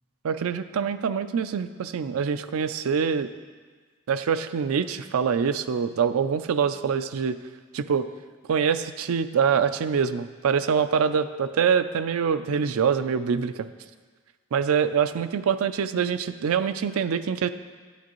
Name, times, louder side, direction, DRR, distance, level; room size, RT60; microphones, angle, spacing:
voice 1, 0.2-3.3 4.1-7.4 7.7-8.1 8.5-13.7 14.5-17.5, right 6 dB, 90° right, 12 dB, 0.4 m, -25 dB
10.0 x 9.2 x 3.0 m, 1.5 s
head